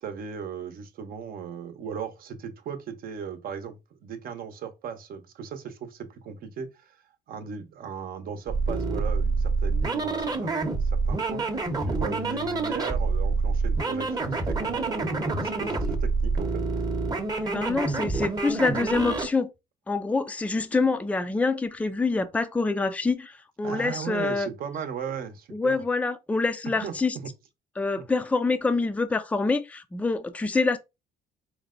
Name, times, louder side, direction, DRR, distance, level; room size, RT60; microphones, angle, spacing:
voice 1, 0.0-7.0 7.3-16.9 23.6-25.8 26.7-27.3 28.0-28.1, right 6 dB, 60° right, 0.9 m, -37 dB
sound 1, 8.5-19.3, right 3 dB, 20° right, 0.8 m, -27 dB
voice 2, 17.4-19.5 19.9-24.5 25.5-27.2 27.8-30.8, left 3 dB, 10° left, 0.4 m, -26 dB
4.6 x 2.2 x 3.7 m
cardioid pair, 110°, 17 cm